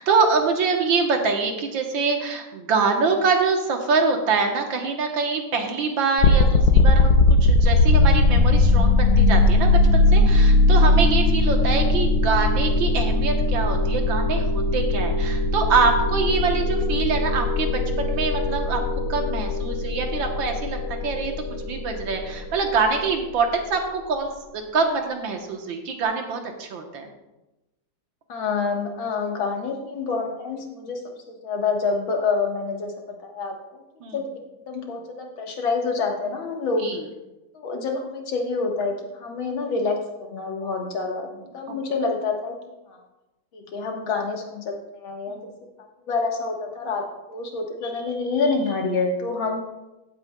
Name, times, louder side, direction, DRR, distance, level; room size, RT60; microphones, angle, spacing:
voice 1, 0.0-14.5 14.7-18.8 19.1-20.8 21.0-21.3 21.6-27.1 34.0-34.2 36.8-37.0 41.7-41.8 45.3-45.5, right 4 dB, 70° right, 3 dB, 1.8 m, -24 dB
sound 1, 6.2-23.1, left 2 dB, 90° left, 1.7 m, -19 dB
voice 2, 28.3-31.0 31.3-33.8 34.1-34.2 34.7-36.9 37.5-41.3 41.5-42.5 43.5-45.4 46.1-47.0 47.3-49.6, left 4 dB, 75° left, 1 dB, 2.1 m, -27 dB
15.5 x 8.7 x 2.2 m, 1.0 s
omnidirectional pair, 2.2 m